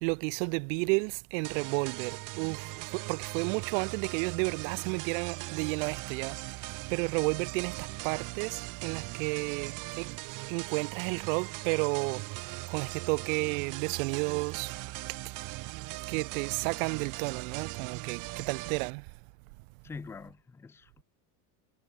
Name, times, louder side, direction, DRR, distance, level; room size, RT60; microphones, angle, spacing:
voice 1, 0.0-10.1 10.5-14.7 16.1-19.1, right 33 dB, 60° right, 0.5 m, -32 dB
sound 1, 1.4-18.9, right 22 dB, 40° right, 0.9 m, -40 dB
sound 2, 9.7-10.3 10.6-11.9 12.2-12.3 12.5-12.9 13.1-14.4 14.7-14.8 15.0-15.4 15.7-16.9 17.2-17.3 17.5-17.9 18.2-19.4, right 21 dB, 80° right, 2.5 m, -58 dB
voice 2, 19.8-21.0, left 4 dB, 5° left, 0.4 m, -44 dB
supercardioid pair, 140°, 47 cm